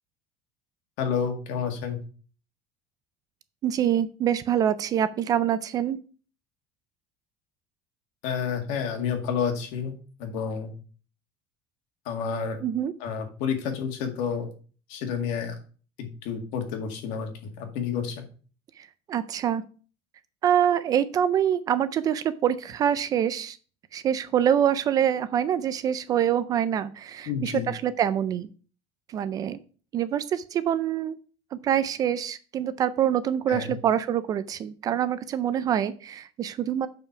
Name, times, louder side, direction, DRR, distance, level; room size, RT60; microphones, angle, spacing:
voice 1, 1.0-2.0 8.2-9.9 10.2-10.7 12.1-12.6 13.0-14.5 14.9-15.5 16.0-17.3 17.6-18.2 27.3-27.7 33.5-33.7, left 6 dB, 60° left, 5 dB, 2.0 m, -29 dB
voice 2, 3.6-6.0 12.6-12.9 18.8-19.6 20.4-23.6 23.9-28.5 29.1-29.6 29.9-31.2 31.5-36.9, right 9 dB, 25° right, 14 dB, 0.4 m, -25 dB
6.9 x 5.7 x 5.6 m, 0.39 s
cardioid pair, 180°, 13 cm